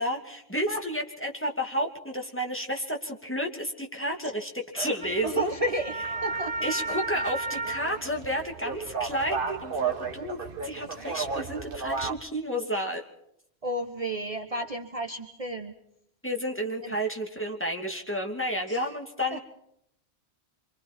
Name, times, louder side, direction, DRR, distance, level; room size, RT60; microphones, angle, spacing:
voice 1, 0.0-5.5 6.6-13.1 16.2-19.4, equal, 10° left, 1 dB, 2.8 m, -31 dB
voice 2, 4.7-6.0 6.2-6.5 13.6-15.7 16.8-17.0 18.7-18.8 19.3-19.4, right 1 dB, 35° right, 5 dB, 1.4 m, -32 dB
sound 1, 5.0-12.1, right 4 dB, 55° right, 1.6 m, -33 dB
26.5 x 25.0 x 4.5 m, 0.74 s
omnidirectional pair, 1.1 m